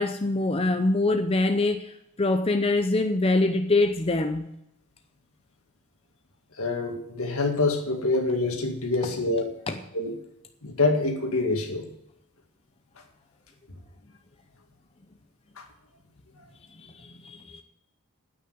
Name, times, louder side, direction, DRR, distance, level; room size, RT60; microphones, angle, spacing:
voice 1, 0.0-4.5 9.7-9.8 16.8-17.6, left 2 dB, 25° left, 0.6 m, -24 dB
voice 2, 6.6-9.5 9.9-10.1 10.6-11.9 15.6-15.7, left 2 dB, 75° left, 2.1 m, -26 dB
9.8 x 8.6 x 7.9 m
head